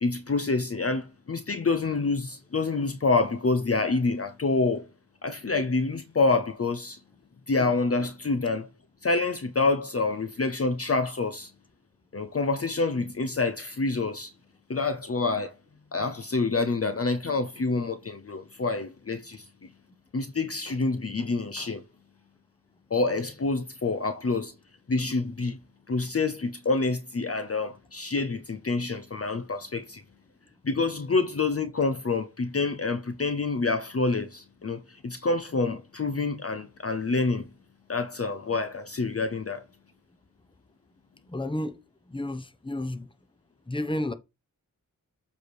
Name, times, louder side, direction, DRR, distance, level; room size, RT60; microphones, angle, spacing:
voice 1, 0.0-4.9 5.2-7.0 7.5-8.7 9.0-11.5 12.1-14.3 14.7-15.5 15.9-19.5 20.1-21.8 22.9-24.5 24.9-25.6 25.9-30.0 30.6-37.5 37.9-39.6, left 3 dB, 45° left, 0.7 m, -27 dB
voice 2, 41.3-41.8 42.1-43.1 43.7-44.1, left 1 dB, 15° left, 0.9 m, -31 dB
7.7 x 3.4 x 6.1 m
wide cardioid pair, 60°, 34 cm